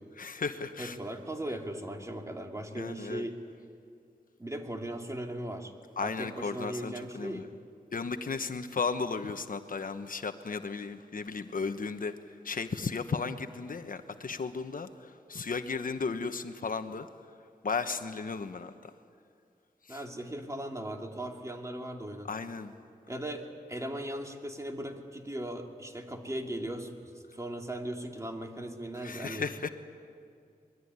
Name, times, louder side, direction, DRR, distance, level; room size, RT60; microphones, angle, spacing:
voice 1, 0.1-1.0 2.7-3.3 6.0-7.5 7.9-17.1 17.6-18.9 19.8-20.0 22.2-22.7 29.0-29.7, left 4 dB, 60° left, 8 dB, 1.2 m, -35 dB
voice 2, 0.8-3.4 4.4-5.7 6.0-7.5 19.9-22.3 23.1-29.4, right 1 dB, 20° right, 2 dB, 2.8 m, -38 dB
26.0 x 21.5 x 9.6 m, 2.4 s
wide cardioid pair, 100°, 16 cm